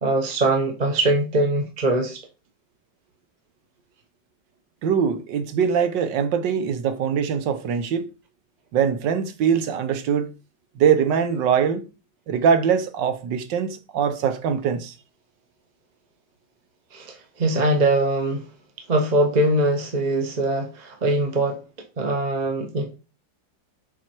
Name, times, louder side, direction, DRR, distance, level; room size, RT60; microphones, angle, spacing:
voice 1, 0.0-2.2 16.9-18.5 18.9-21.6 22.0-23.0, right 2 dB, 30° right, 0.8 m, -22 dB
voice 2, 4.8-8.1 8.7-10.3 10.8-11.8 12.3-14.9, right 7 dB, 85° right, 1.6 m, -22 dB
7.3 x 4.9 x 4.5 m
omnidirectional pair, 1.9 m